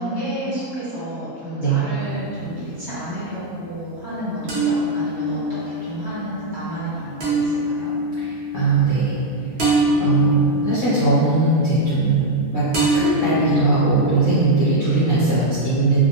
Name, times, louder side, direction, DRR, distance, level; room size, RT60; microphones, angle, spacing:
voice 1, 0.0-7.9, equal, 35° right, -14 dB, 1.2 m, -30 dB
Striking a Water Bottle, 2.0-2.9 4.5-12.4 12.7-14.8, equal, 60° right, 0.9 m, -24 dB
voice 2, 8.2-9.2 10.0-16.0, right 3 dB, 50° left, -13 dB, 0.8 m, -19 dB
2.6 x 2.1 x 2.7 m, 2.5 s
omnidirectional pair, 1.5 m